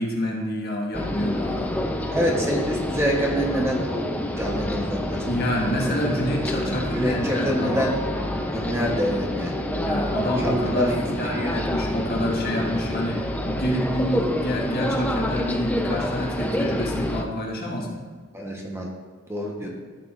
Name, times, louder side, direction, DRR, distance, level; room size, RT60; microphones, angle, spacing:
voice 1, 0.0-1.7 5.2-7.8 9.7-18.0 19.6-19.7, equal, 50° left, -2 dB, 1.6 m, -27 dB
sound 1, 0.9-17.2, left 1 dB, 5° left, 0.5 m, -28 dB
voice 2, 2.1-4.0 4.4-5.2 6.1-6.2 6.6-7.9 8.5-9.9 10.4-11.5 18.3-18.9 19.3-19.7, equal, 10° right, -1 dB, 1.0 m, -27 dB
13.5 x 7.4 x 2.5 m, 1.4 s
head